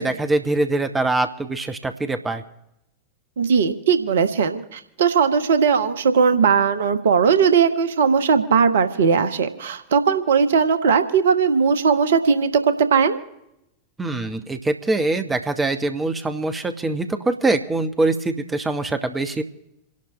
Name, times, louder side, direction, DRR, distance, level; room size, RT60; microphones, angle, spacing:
voice 1, 0.0-2.4 14.0-19.4, right 2 dB, 15° right, 8 dB, 1.1 m, -23 dB
voice 2, 3.4-13.2, right 6 dB, 60° right, 10 dB, 1.1 m, -18 dB
28.0 x 11.5 x 3.1 m, 0.86 s
figure-of-eight pair, 90°, 0 cm